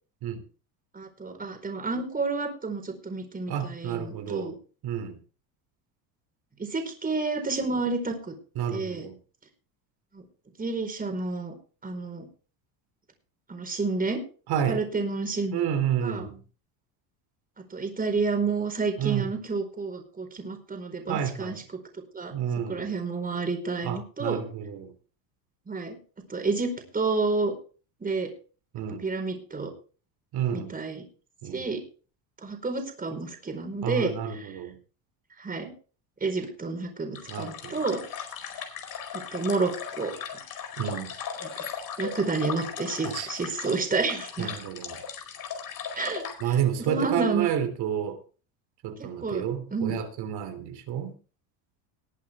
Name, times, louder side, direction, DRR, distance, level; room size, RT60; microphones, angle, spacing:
voice 1, 0.9-4.5 6.6-8.3 8.7-9.1 10.1-10.2 10.6-11.5 11.8-12.3 13.5-14.2 14.7-15.6 16.0-16.3 17.7-21.6 22.1-22.3 22.7-24.4 25.7-26.0 26.3-27.5 28.0-28.3 29.0-29.7 30.5-31.0 31.5-31.8 32.4-34.5 35.4-35.7 36.2-38.0 38.6-38.7 39.1-40.1 41.4-41.5 42.0-44.5 45.9-46.6 46.9-47.5 49.0-49.4 49.7-50.0, right 4 dB, 20° right, 5 dB, 4.6 m, -30 dB
voice 2, 3.5-4.6 4.8-5.1 8.6-9.2 14.5-14.8 15.5-16.4 19.0-19.3 21.1-21.6 22.3-22.9 23.8-24.9 28.7-29.0 30.3-30.7 31.4-31.7 33.8-34.8 37.3-37.8 40.8-41.1 43.0-43.3 44.4-45.0 46.4-48.2 48.8-51.1, right 9 dB, 55° right, 8 dB, 3.0 m, -30 dB
sound 1, 37.1-46.4, left 7 dB, 45° left, 4.8 m, -37 dB
20.5 x 8.4 x 3.6 m, 0.38 s
supercardioid pair, 110°, 46 cm